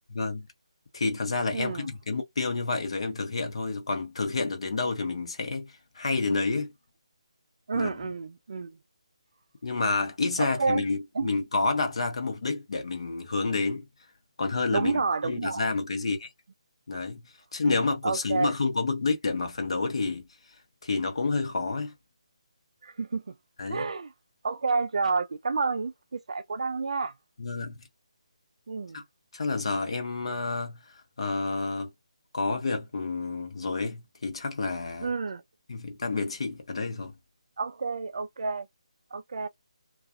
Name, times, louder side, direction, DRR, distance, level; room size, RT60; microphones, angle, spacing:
voice 1, 0.1-0.5 0.9-6.7 7.7-7.9 9.6-13.8 14.4-16.3 16.9-17.2 17.5-20.3 20.8-21.9 23.6-23.9 27.4-27.8 28.9-29.0 29.3-30.8 31.2-31.9 32.3-35.1 35.7-37.1, left 3 dB, 60° left, 0.8 m, -29 dB
voice 2, 1.5-1.9 7.7-8.8 10.4-10.8 11.1-11.3 14.7-15.6 17.6-18.5 22.8-23.3 23.7-24.1 24.4-27.1 28.7-29.0 35.0-35.4 37.6-38.7 39.1-39.5, right 4 dB, 65° right, 0.3 m, -30 dB
2.3 x 2.3 x 2.5 m
hypercardioid pair, 170°, 3 cm